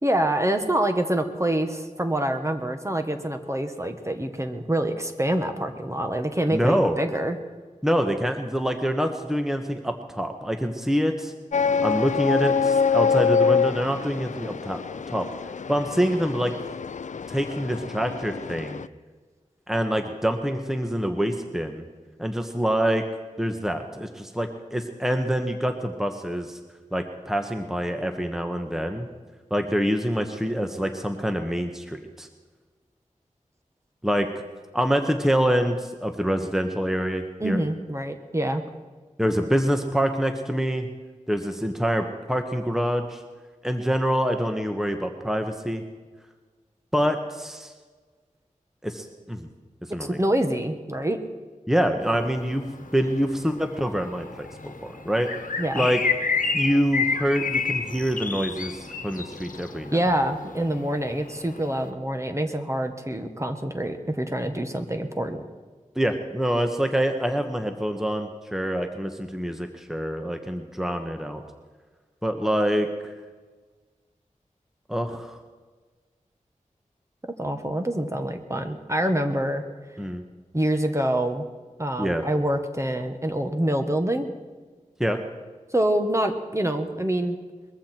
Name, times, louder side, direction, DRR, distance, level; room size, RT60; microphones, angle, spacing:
voice 1, 0.0-7.4 37.4-38.6 50.1-51.2 55.6-55.9 59.9-65.4 77.4-79.6 80.5-81.5 81.8-84.3 85.7-87.4, right 1 dB, 20° right, 6 dB, 1.5 m, -26 dB
voice 2, 6.5-7.0 7.8-11.3 11.8-14.8 15.1-15.3 15.7-16.5 17.3-18.8 19.7-21.8 22.2-23.0 23.4-26.6 26.9-29.1 29.5-32.3 34.0-34.3 34.7-37.6 39.2-40.9 41.3-43.2 43.6-45.8 46.9-47.7 48.8-49.5 49.9-50.2 51.7-52.6 52.9-54.5 54.8-55.3 55.7-56.0 56.5-60.0 65.9-71.4 72.2-73.1 74.9-75.4 80.0-80.2 82.0-82.2 85.0-85.2, equal, 5° right, 5 dB, 1.3 m, -26 dB
sound 1, 11.5-18.9, left 6 dB, 65° left, 0.4 m, -25 dB
sound 2, 52.0-61.9, left 5 dB, 85° left, 1.2 m, -31 dB
21.5 x 14.5 x 4.5 m, 1.4 s
wide cardioid pair, 55°, 14 cm